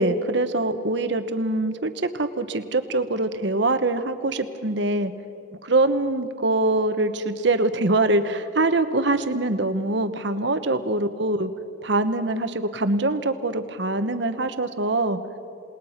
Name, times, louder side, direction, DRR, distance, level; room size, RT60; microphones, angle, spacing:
voice 1, 0.0-5.1 5.6-11.5 11.8-15.2, right 2 dB, 60° right, 10 dB, 1.1 m, -23 dB
28.0 x 20.0 x 5.9 m, 2.6 s
head